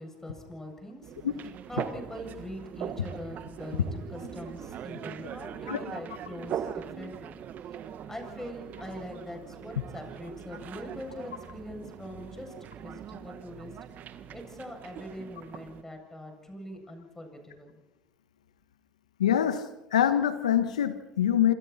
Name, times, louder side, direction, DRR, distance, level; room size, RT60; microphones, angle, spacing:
voice 1, 0.0-1.2 1.7-7.4 8.1-13.7 14.3-17.8, left 1 dB, 10° left, 3 dB, 7.9 m, -42 dB
sound 1, 1.0-15.8, right 9 dB, 50° right, 1.6 m, -41 dB
voice 2, 19.2-19.6 19.9-21.5, left 10 dB, 90° left, 11 dB, 1.5 m, -24 dB
27.0 x 27.0 x 4.4 m, 0.93 s
hypercardioid pair, 70°, 4 cm